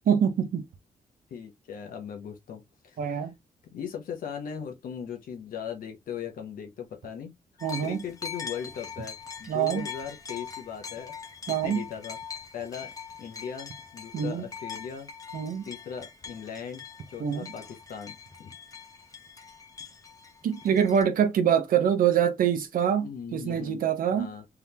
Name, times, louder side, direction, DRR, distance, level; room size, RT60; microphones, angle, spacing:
voice 1, 0.1-0.6 3.0-3.3 7.6-8.0 9.5-9.8 11.5-11.8 14.1-14.5 15.3-15.6 17.2-17.5 20.4-24.3, right 8 dB, 75° right, 0.9 m, -25 dB
voice 2, 1.3-3.2 3.6-7.3 7.8-11.1 11.5-12.2 12.5-12.9 13.2-15.1 15.6-18.5 23.0-23.8 24.1-24.5, left 7 dB, 80° left, 0.9 m, -39 dB
sound 1, 7.6-21.0, left 6 dB, 25° left, 0.8 m, -42 dB
3.6 x 3.5 x 2.9 m
wide cardioid pair, 135°, 14 cm